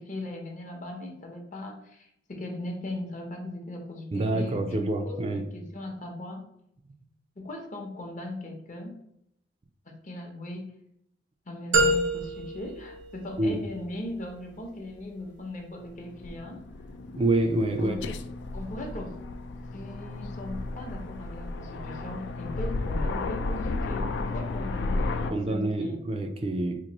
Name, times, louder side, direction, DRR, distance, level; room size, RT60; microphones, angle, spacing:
voice 1, 0.0-6.4 7.4-9.0 9.9-10.7 11.5-16.7 17.8-18.0 18.5-19.1 19.7-26.0, left 1 dB, 45° left, 2 dB, 0.7 m, -38 dB
voice 2, 4.1-5.4 13.4-13.6 17.1-18.0 25.3-26.8, right 2 dB, 30° right, 5 dB, 0.3 m, -27 dB
sound 1, 11.7-13.8, right 1 dB, 85° right, 1.0 m, -27 dB
Aircraft, 15.8-25.3, left 3 dB, 70° left, 0.3 m, -33 dB
2.9 x 2.5 x 4.0 m, 0.76 s
head